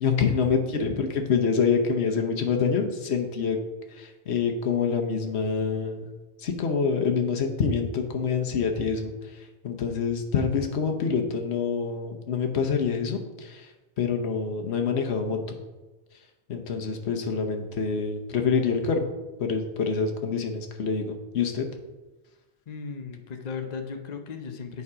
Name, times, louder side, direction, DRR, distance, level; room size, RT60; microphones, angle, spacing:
voice 1, 0.0-3.6 4.0-6.1 6.4-9.1 9.6-13.7 14.0-15.6 16.5-19.1 19.4-21.7, left 5 dB, 85° left, 4 dB, 1.1 m, -26 dB
voice 2, 22.7-24.8, left 5 dB, 45° left, 5 dB, 0.8 m, -36 dB
8.2 x 4.8 x 4.8 m, 1.1 s
omnidirectional pair, 1.1 m